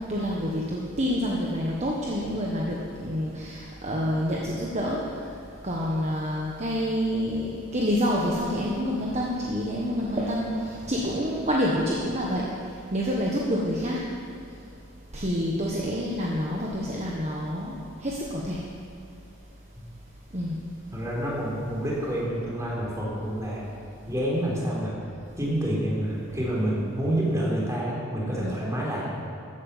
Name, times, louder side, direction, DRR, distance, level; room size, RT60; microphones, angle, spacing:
voice 1, 0.0-5.0 5.6-12.4 12.9-14.0 15.1-17.7 18.0-18.6 20.3-20.5 28.4-28.6, equal, 35° right, -3 dB, 1.4 m, -27 dB
voice 2, 20.9-23.6 24.1-24.9 25.4-29.1, right 1 dB, 15° right, -5 dB, 3.7 m, -28 dB
14.5 x 9.0 x 7.4 m, 2.6 s
head